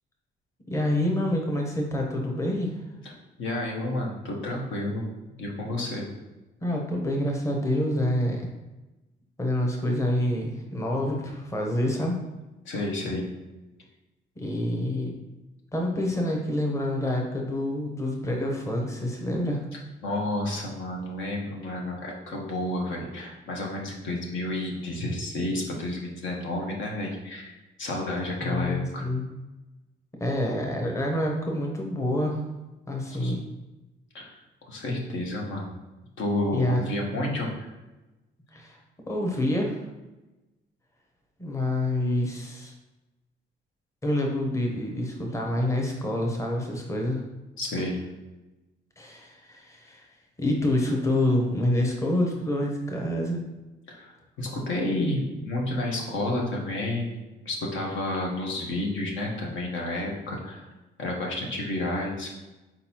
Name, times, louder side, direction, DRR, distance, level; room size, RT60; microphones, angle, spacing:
voice 1, 0.7-2.8 6.6-8.5 9.4-12.2 14.4-15.2 15.7-19.6 28.4-29.2 30.2-32.4 32.9-33.4 36.5-36.9 38.5-38.8 39.1-39.8 41.4-42.7 44.0-47.2 49.0-50.1 50.4-53.4, left 1 dB, 15° left, 0 dB, 0.9 m, -27 dB
voice 2, 3.4-5.1 5.4-6.1 12.6-13.3 20.0-29.1 33.1-33.3 34.1-34.4 34.7-35.7 36.2-37.7 47.6-48.0 53.9-60.7 61.0-62.3, left 1 dB, 75° left, -1 dB, 1.2 m, -30 dB
4.4 x 3.9 x 2.9 m, 1.1 s
cardioid pair, 90°, 20 cm